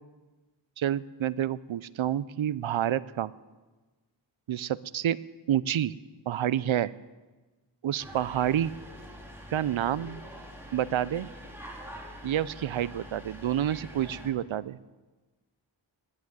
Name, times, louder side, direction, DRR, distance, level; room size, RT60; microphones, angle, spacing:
voice 1, 0.8-3.3 4.5-5.2 5.5-5.9 6.3-6.9 7.8-8.7 9.5-10.2 10.7-11.3 12.2-14.9, right 11 dB, 80° right, 19 dB, 0.5 m, -28 dB
sound 1, 8.0-14.3, equal, 5° right, 2.9 m, -45 dB
11.0 x 9.8 x 9.2 m, 1.2 s
wide cardioid pair, 55°, 47 cm